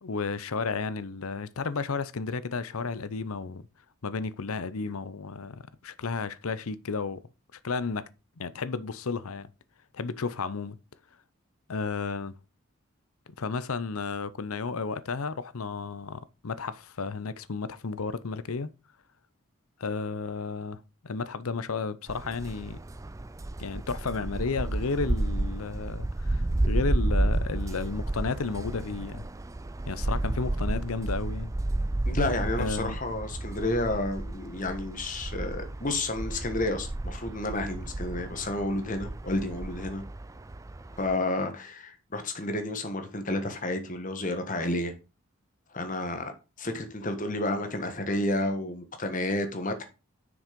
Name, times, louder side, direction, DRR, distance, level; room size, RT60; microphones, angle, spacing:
voice 1, 0.0-3.6 4.0-7.2 7.6-8.1 8.4-9.5 9.9-10.8 11.7-12.3 13.4-18.7 19.8-22.8 23.6-29.3 29.9-31.5 32.6-33.0, left 4 dB, 85° left, 0.7 m, -33 dB
sound 1, 22.1-41.2, right 2 dB, 15° right, 0.3 m, -32 dB
voice 2, 32.0-40.0 41.0-44.9 45.7-46.3 46.6-49.8, left 2 dB, 35° left, 1.6 m, -31 dB
7.3 x 6.4 x 5.2 m
head